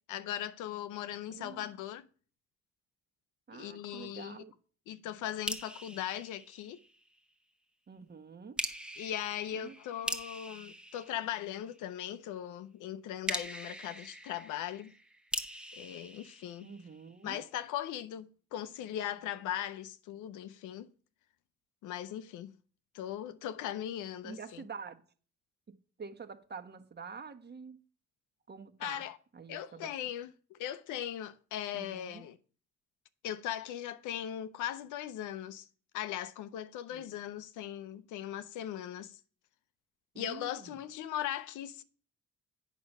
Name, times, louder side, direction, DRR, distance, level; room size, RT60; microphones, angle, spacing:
voice 1, 0.1-2.1 3.5-4.4 4.9-6.8 9.0-14.9 15.8-16.7 17.2-20.9 21.8-22.5 22.9-24.6 28.8-29.2 29.5-32.4 33.2-35.7 35.9-39.2 40.2-41.8, left 11 dB, 90° left, 0.7 m, -39 dB
voice 2, 1.3-1.7 3.5-4.5 7.9-8.6 9.5-9.7 16.6-17.4 24.2-25.0 25.7-27.8 28.5-29.1 29.3-29.9 31.7-32.2 36.9-37.1 40.1-40.8, right 5 dB, 35° right, 1.1 m, -47 dB
sound 1, 5.5-7.2 8.6-11.9 13.3-17.2, right 1 dB, 5° right, 0.9 m, -42 dB
8.4 x 6.0 x 5.4 m
cardioid pair, 90°, 30 cm